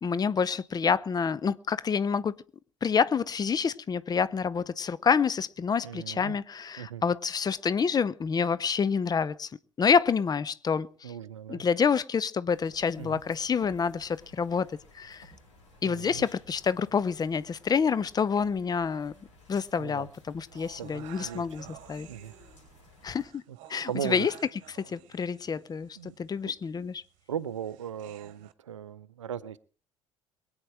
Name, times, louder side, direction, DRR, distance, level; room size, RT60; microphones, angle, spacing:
voice 1, 0.0-2.3 2.8-11.1 11.5-15.3 15.8-19.1 19.5-22.1 23.0-23.4 23.7-24.3 24.7-27.0, left 6 dB, 25° left, 0.7 m, -28 dB
voice 2, 5.8-6.4 6.8-7.0 11.0-11.7 13.0-13.2 15.8-16.3 19.8-20.1 20.8-21.8 22.1-22.3 23.5-23.6 23.9-24.3 26.0-26.2 26.4-26.5 27.3-29.6, right 9 dB, 75° right, 0.6 m, -38 dB
sound 1, 12.5-23.3, left 2 dB, 75° left, 7.3 m, -56 dB
sound 2, 20.5-28.5, right 13 dB, 55° right, 1.2 m, -52 dB
23.0 x 8.9 x 4.8 m
figure-of-eight pair, 55°, 16 cm